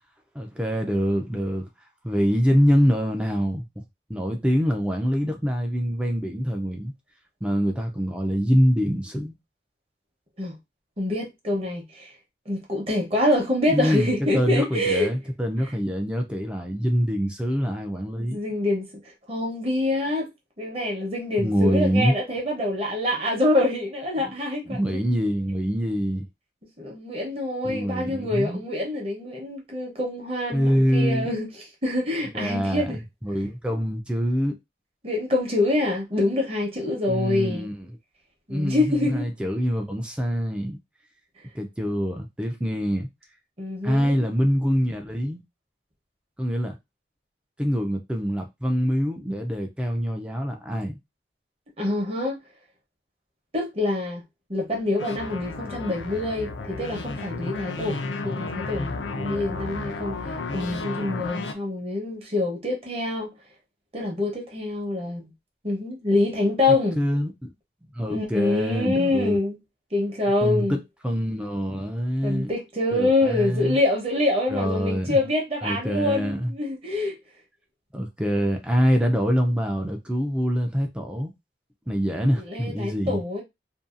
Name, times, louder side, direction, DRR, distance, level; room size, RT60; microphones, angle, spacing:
voice 1, 0.4-1.6 2.0-3.6 4.1-6.9 7.4-9.3 13.7-18.4 21.4-22.1 24.2-24.3 24.7-26.3 27.6-28.6 30.5-31.3 32.3-34.5 37.1-37.9 38.5-40.8 41.5-43.1 43.8-45.4 46.4-46.8 47.6-51.0 66.9-67.5 67.8-69.4 70.4-72.5 72.9-73.8 74.5-75.2 75.6-76.5 77.9-81.3 81.9-83.2, equal, 5° right, 0.3 m, -25 dB
voice 2, 11.0-12.1 12.5-15.1 18.2-18.9 19.3-20.3 20.6-24.8 26.8-31.5 31.8-33.0 35.0-37.7 38.5-39.3 43.6-44.3 51.8-52.4 53.5-54.2 54.5-60.2 60.5-63.3 63.9-65.3 65.6-67.0 68.1-69.6 69.9-70.8 72.2-77.2 82.4-83.4, left 2 dB, 35° right, 0.8 m, -25 dB
sound 1, 55.0-61.5, left 3 dB, 85° left, 0.5 m, -32 dB
2.6 x 2.2 x 2.4 m
head